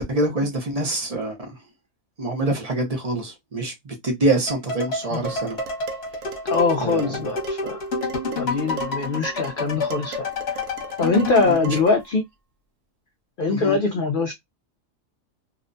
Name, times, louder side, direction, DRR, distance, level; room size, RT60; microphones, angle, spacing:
voice 1, 0.0-1.5 2.2-5.6 6.8-7.3 11.4-11.8 13.5-13.8, right 2 dB, 40° right, 0.6 m, -25 dB
sound 1, 4.5-11.6, left 3 dB, 50° left, 1.1 m, -29 dB
Dishes pots and pans, 5.2-12.1, right 4 dB, 85° right, 1.0 m, -38 dB
voice 2, 6.4-7.8 8.4-10.6 11.0-12.2 13.4-14.3, left 3 dB, 75° left, 0.4 m, -22 dB
2.8 x 2.1 x 2.5 m
omnidirectional pair, 1.4 m